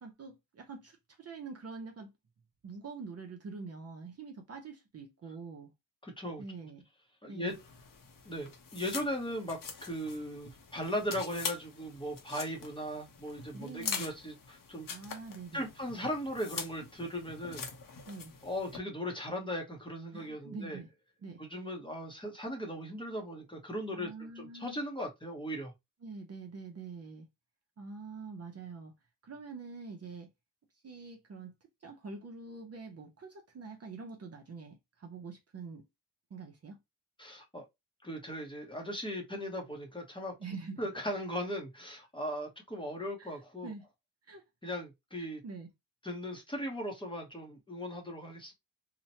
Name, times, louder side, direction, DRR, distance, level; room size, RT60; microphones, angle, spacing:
voice 1, 0.0-2.1 2.6-5.7 6.4-6.8 7.3-7.6 13.5-14.1 14.9-15.7 18.1-18.3 20.1-20.9 21.2-21.4 23.9-24.8 26.0-27.3 27.8-28.9 29.2-30.3 30.8-31.5 31.8-35.8 36.3-36.8 40.4-40.9 43.2-43.4 43.6-43.9 44.2-44.4 45.2-45.7, right 4 dB, 35° right, 0.5 m, -45 dB
voice 2, 6.0-6.4 7.2-7.6 8.2-14.9 15.5-17.7 18.4-20.8 21.4-25.7 37.2-37.6 38.0-40.3 40.8-43.7 44.6-45.4 46.0-48.5, equal, 10° left, 0.7 m, -38 dB
sound 1, 7.5-18.8, left 6 dB, 50° left, 0.7 m, -44 dB
2.9 x 2.1 x 2.7 m
wide cardioid pair, 140°, 42 cm